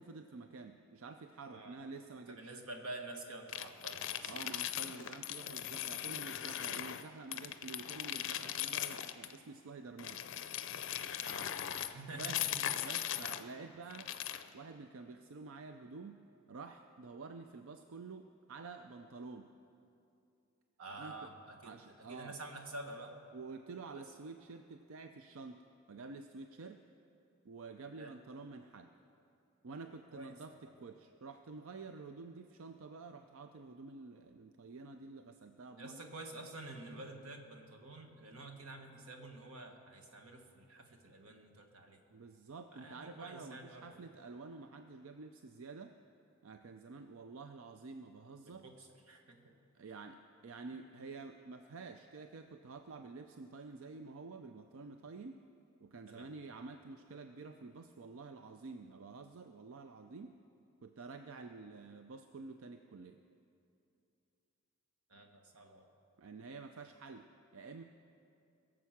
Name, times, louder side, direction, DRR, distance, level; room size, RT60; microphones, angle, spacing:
voice 1, 0.0-2.5 4.3-10.2 12.1-14.1 14.5-16.2 16.5-19.5 21.0-21.3 21.6-22.4 23.3-26.8 27.4-28.9 29.6-36.1 42.1-45.9 46.4-48.6 49.7-55.4 55.8-60.4 60.8-63.2 66.2-67.3 67.5-67.8, right 4 dB, 65° right, 7 dB, 0.5 m, -49 dB
voice 2, 2.3-4.3 11.2-12.5 13.2-13.3 20.8-21.8 22.1-23.1 23.9-24.0 28.0-28.2 30.1-30.3 35.8-42.0 42.7-44.0 48.5-49.5 56.1-56.3 65.1-65.9, right 2 dB, 90° right, 4 dB, 1.4 m, -49 dB
sound 1, 3.5-7.0 7.3-9.4 10.0-13.5 13.9-14.5, left 11 dB, 60° left, 0.5 m, -39 dB
21.5 x 7.4 x 5.9 m, 2.6 s
head